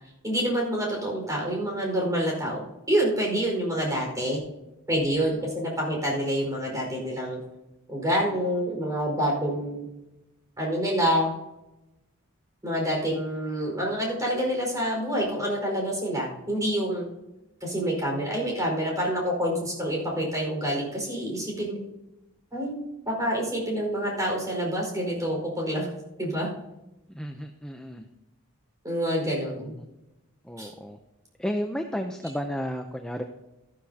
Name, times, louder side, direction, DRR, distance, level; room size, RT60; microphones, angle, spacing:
voice 1, 0.2-2.6 2.9-4.4 4.9-7.4 7.9-9.8 10.6-11.3 12.6-17.0 17.6-21.8 22.5-25.9 26.2-26.5 28.8-29.7 30.6-30.7, equal, 15° right, -1 dB, 5.0 m, -27 dB
voice 2, 27.1-28.1 29.6-29.9 30.4-31.0 31.4-33.2, equal, 5° left, 4 dB, 0.6 m, -33 dB
13.5 x 12.5 x 2.9 m, 0.93 s
head